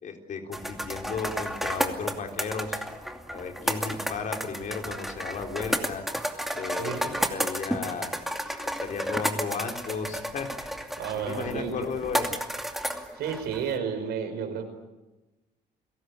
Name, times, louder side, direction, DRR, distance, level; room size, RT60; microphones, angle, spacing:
voice 1, 0.0-2.8 3.3-6.0 6.5-8.1 8.8-10.7 11.1-12.5, left 5 dB, 50° left, 4 dB, 4.0 m, -34 dB
sound 1, 0.5-13.8, equal, ahead, 2.5 m, -32 dB
voice 2, 6.8-7.4 11.0-11.9 13.1-14.7, right 7 dB, 75° right, 7 dB, 5.3 m, -32 dB
30.0 x 17.5 x 8.5 m, 1.1 s
cardioid pair, 110°, 17 cm